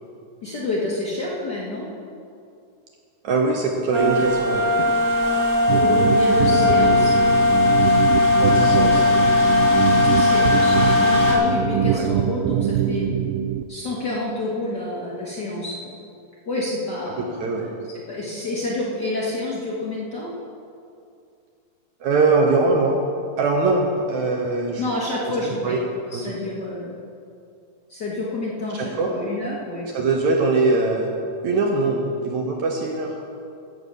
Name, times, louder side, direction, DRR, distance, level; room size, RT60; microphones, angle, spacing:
voice 1, 0.4-1.9 5.7-7.2 9.9-13.2 13.7-15.9 16.5-17.7 18.1-20.3 24.8-25.8 26.1-26.9 27.9-29.9, left 2 dB, 60° left, -5 dB, 1.1 m, -28 dB
voice 2, 3.2-4.9 8.4-9.0 11.9-12.1 17.2-17.7 22.0-23.0 23.4-24.8 25.4-25.8 26.1-26.4 28.7-29.1 29.9-31.1 31.4-33.2, right 3 dB, 70° right, 1 dB, 1.9 m, -22 dB
sound 1, 3.9-11.3, left 3 dB, 10° right, 1.3 m, -18 dB
sound 2, 5.7-13.6, right 10 dB, 85° right, 2.4 m, -23 dB
16.0 x 6.5 x 6.8 m, 2.4 s
omnidirectional pair, 4.2 m